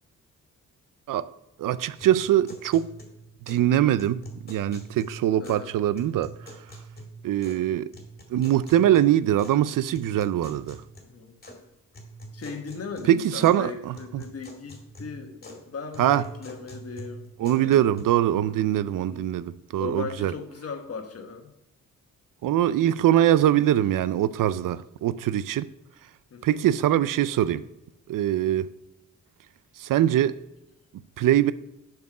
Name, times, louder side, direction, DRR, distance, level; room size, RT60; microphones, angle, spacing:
voice 1, 1.6-2.9 3.5-6.5 7.2-7.9 8.3-10.8 13.1-14.2 16.0-16.2 17.4-20.3 22.4-25.7 26.4-27.6 28.1-28.7 29.8-30.4 31.2-31.5, right 12 dB, 85° right, 0.5 m, -23 dB
sound 1, 2.0-3.7 4.0-5.7 6.0-7.7 7.9-9.6 9.9-11.6 11.9-13.6 13.9-15.6 15.9-18.0, right 1 dB, 30° left, 2.2 m, -45 dB
voice 2, 5.4-5.7 11.0-11.4 12.3-17.9 19.0-19.3 19.8-21.5 26.3-26.7 28.4-28.6, left 5 dB, 50° left, 1.2 m, -38 dB
7.4 x 6.2 x 4.9 m
wide cardioid pair, 140°, 32 cm